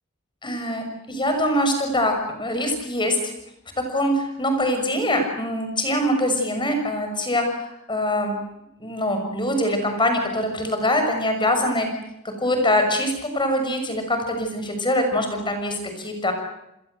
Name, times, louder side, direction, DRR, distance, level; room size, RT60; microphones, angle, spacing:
voice 1, 0.4-3.3 3.8-8.3 8.8-11.9 12.4-16.3, left 1 dB, 20° left, 5 dB, 6.3 m, -23 dB
29.5 x 22.0 x 8.0 m, 0.85 s
head